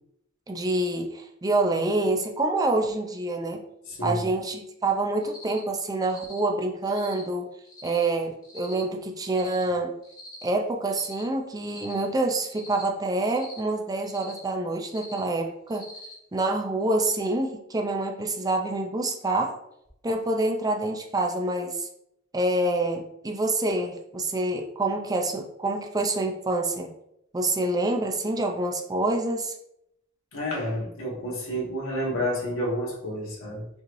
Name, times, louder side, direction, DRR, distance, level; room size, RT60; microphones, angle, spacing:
voice 1, 0.5-3.6 4.0-7.5 7.8-9.9 10.4-15.9 16.3-19.6 20.0-21.9 22.3-26.9 27.3-29.5, right 2 dB, 20° right, 3 dB, 0.4 m, -27 dB
voice 2, 3.9-4.2 30.3-33.7, equal, 90° left, -4 dB, 1.5 m, -30 dB
Cricket, 5.2-5.6 6.0-6.4 6.8-7.2 7.7-8.0 8.4-8.8 9.2-9.6 10.0-10.4 10.8-11.2 11.6-12.0 12.4-12.8 13.2-13.6 14.0-14.4 14.8-15.2 15.7-16.1, left 2 dB, 20° left, 1.2 m, -45 dB
5.3 x 3.1 x 2.6 m, 0.77 s
head